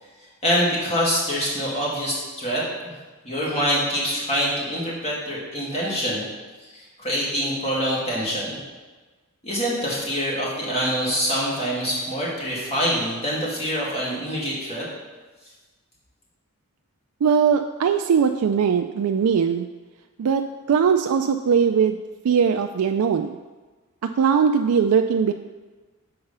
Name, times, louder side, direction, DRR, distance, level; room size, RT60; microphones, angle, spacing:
voice 1, 0.4-2.9 3.2-6.2 6.6-8.6 9.4-14.9, equal, 30° left, -5 dB, 2.1 m, -25 dB
voice 2, 17.2-19.7 20.2-20.4 20.7-23.4 24.0-25.3, right 6 dB, 85° right, 6 dB, 0.4 m, -20 dB
6.7 x 4.8 x 5.4 m, 1.3 s
head